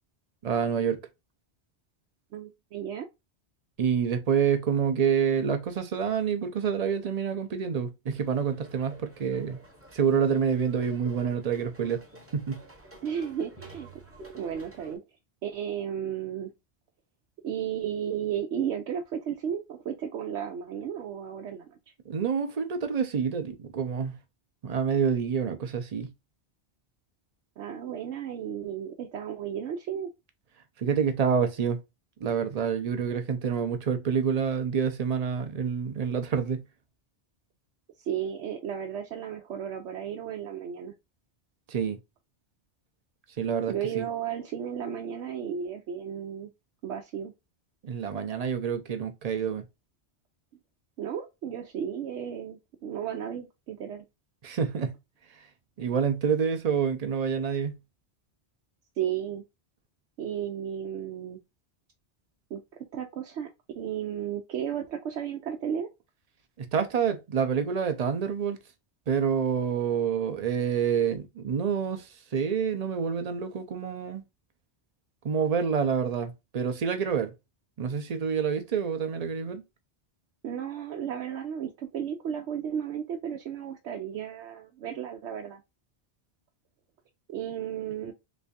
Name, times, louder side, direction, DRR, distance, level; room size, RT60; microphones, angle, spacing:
voice 1, 0.4-1.0 3.8-9.6 9.9-12.0 12.3-12.6 22.1-24.2 24.6-26.1 30.8-31.8 32.2-36.6 41.7-42.0 43.4-44.0 47.8-49.6 54.4-54.9 55.8-57.8 66.6-68.6 69.1-74.2 75.2-77.3 77.8-79.6, right 7 dB, 45° right, 0.6 m, -27 dB
voice 2, 2.3-3.1 13.0-13.9 14.3-15.0 15.4-16.5 17.4-21.7 27.6-30.1 38.1-40.9 43.7-46.5 46.8-47.3 51.0-54.0 59.0-59.4 60.2-61.4 62.5-62.6 62.9-63.5 63.8-65.9 80.4-85.6 87.3-88.1, right 9 dB, 85° right, 0.9 m, -34 dB
sound 1, 8.2-15.0, right 1 dB, 15° right, 0.8 m, -50 dB
3.3 x 3.2 x 2.5 m
omnidirectional pair, 1.1 m